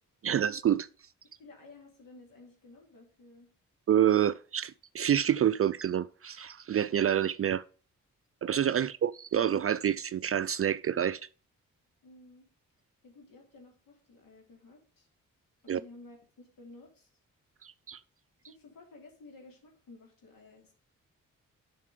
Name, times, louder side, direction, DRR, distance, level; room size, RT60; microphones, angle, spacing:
voice 1, 0.2-0.9 3.9-7.6 8.4-11.2 15.7-15.8 17.6-18.0, right 10 dB, 45° right, 0.4 m, -27 dB
voice 2, 1.4-3.5 12.0-12.5 13.0-15.1 15.6-17.1 18.4-20.7, left 2 dB, 80° left, 3.0 m, -54 dB
7.3 x 5.9 x 4.9 m
supercardioid pair, 50°, 34 cm